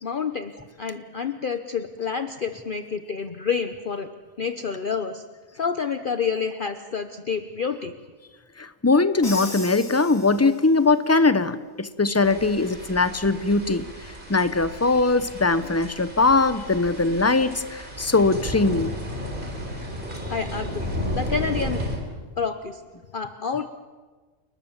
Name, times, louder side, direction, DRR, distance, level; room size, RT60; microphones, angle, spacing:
voice 1, 0.0-0.5 0.8-4.1 4.4-5.3 5.6-7.9 20.1-21.8 22.4-22.8 23.1-23.7, left 6 dB, 45° left, 9 dB, 1.0 m, -28 dB
voice 2, 8.6-13.8 14.3-18.9, left 3 dB, 15° left, 13 dB, 0.8 m, -21 dB
Crash cymbal, 9.2-11.0, left 2 dB, 80° left, 5.2 m, -37 dB
sound 1, 12.2-22.0, equal, 40° right, 4.1 m, -33 dB
29.5 x 19.5 x 7.3 m, 1.4 s
omnidirectional pair, 1.4 m